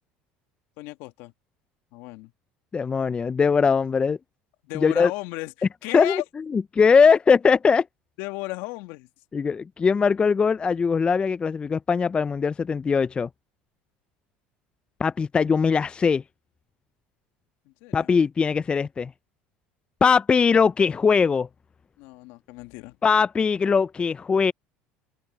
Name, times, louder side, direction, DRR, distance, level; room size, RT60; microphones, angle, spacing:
voice 1, 0.8-1.3 1.9-2.3 4.6-6.2 8.2-9.1 17.7-18.1 22.0-23.0, left 21 dB, 75° left, 2.0 m, -35 dB
voice 2, 2.7-4.2 4.8-5.1 5.9-6.2 6.5-7.8 9.3-13.3 15.0-16.2 17.9-19.1 20.0-21.5 23.0-24.5, left 5 dB, 25° left, 0.4 m, -20 dB
open air
supercardioid pair, 90°, 4 cm